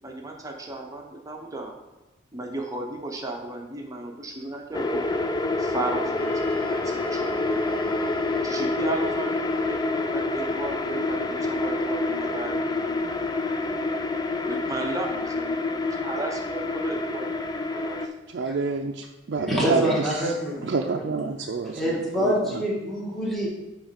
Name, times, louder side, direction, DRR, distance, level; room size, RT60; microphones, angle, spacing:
voice 1, 0.0-1.7 2.3-5.0 5.6-8.1 8.4-9.8 10.1-13.1 14.4-18.0, right 2 dB, 20° right, 1 dB, 0.8 m, -35 dB
sound 1, 4.7-18.1, left 2 dB, 20° left, 0.4 m, -27 dB
Wind instrument woodwind instrument, 6.1-10.2, right 1 dB, 50° left, 1.5 m, -42 dB
voice 2, 18.3-20.0 20.6-21.8 22.2-22.3, right 4 dB, 60° right, 1 dB, 0.4 m, -27 dB
voice 3, 19.3-21.0 21.7-23.5, equal, ahead, -5 dB, 1.6 m, -26 dB
8.4 x 3.2 x 5.7 m, 1.1 s
head